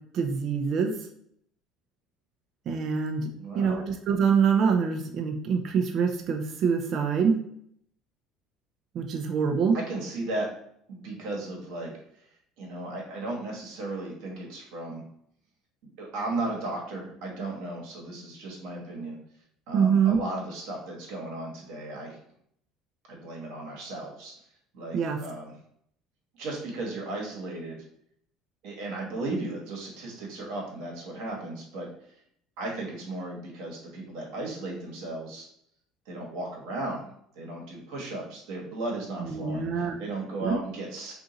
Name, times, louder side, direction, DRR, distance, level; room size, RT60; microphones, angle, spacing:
voice 1, 0.1-0.9 2.7-3.3 3.6-7.4 8.9-9.8 19.7-20.2 24.9-25.2 39.2-40.0 40.4-40.6, right 6 dB, 55° right, 4 dB, 0.5 m, -25 dB
voice 2, 3.4-3.8 9.7-10.5 10.9-11.9 12.6-15.0 16.0-19.2 19.7-22.2 23.1-24.3 24.7-25.5 26.4-27.8 28.6-31.9 32.6-35.5 36.1-37.1 37.4-41.1, right 2 dB, 75° right, -1 dB, 1.2 m, -35 dB
2.7 x 2.5 x 3.7 m, 0.68 s
supercardioid pair, 85°, 0 cm